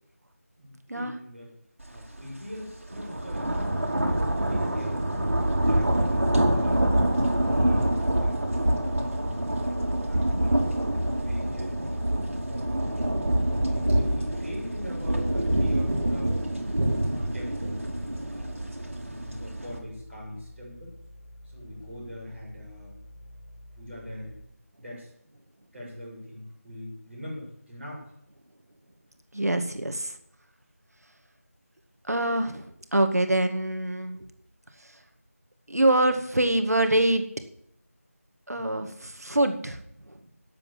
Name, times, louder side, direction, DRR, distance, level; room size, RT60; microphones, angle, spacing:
voice 1, 0.6-1.5 1.9-5.1 5.4-6.9 7.3-9.5 10.0-12.9 13.5-16.5 16.8-17.8 18.3-20.9 21.4-22.9 23.8-24.4 24.8-25.1 25.7-28.0 38.5-38.7, equal, ahead, -22 dB, 4.2 m, -42 dB
sound 1, 2.0-2.2 2.5-19.8, right 1 dB, 55° right, 3.0 m, -26 dB
sound 2, 9.5-24.4, equal, 25° left, 1.6 m, -48 dB
voice 2, 29.3-30.1 32.1-32.6 32.9-34.2 35.7-37.2 38.5-39.8, right 1 dB, 80° right, 7 dB, 2.0 m, -24 dB
11.5 x 7.8 x 8.9 m, 0.74 s
figure-of-eight pair, 180°, 8 cm